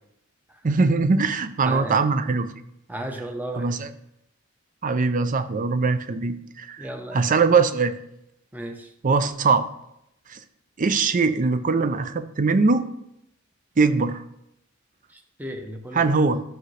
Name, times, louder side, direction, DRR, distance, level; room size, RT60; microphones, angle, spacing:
voice 1, 0.6-2.5 3.6-3.9 4.8-7.9 9.0-9.6 10.3-10.4 10.8-12.9 13.8-14.2 15.9-16.4, right 4 dB, 40° right, 12 dB, 0.5 m, -21 dB
voice 2, 1.6-2.0 2.9-3.8 6.8-7.3 8.5-8.9 15.1-16.1, right 1 dB, 10° right, 4 dB, 0.8 m, -34 dB
12.0 x 6.3 x 3.3 m, 0.81 s
head